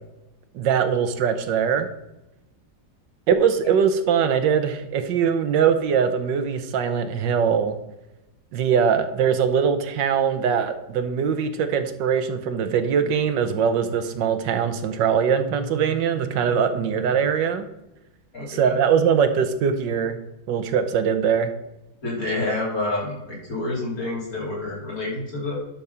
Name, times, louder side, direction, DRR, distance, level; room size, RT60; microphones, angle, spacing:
voice 1, 0.5-1.9 3.3-7.7 8.5-17.7 18.5-20.2 20.5-21.5, right 7 dB, 85° right, 9 dB, 1.5 m, -22 dB
voice 2, 18.3-18.8 22.0-25.6, left 2 dB, 50° left, -5 dB, 3.7 m, -28 dB
11.0 x 4.6 x 5.6 m, 0.94 s
omnidirectional pair, 1.9 m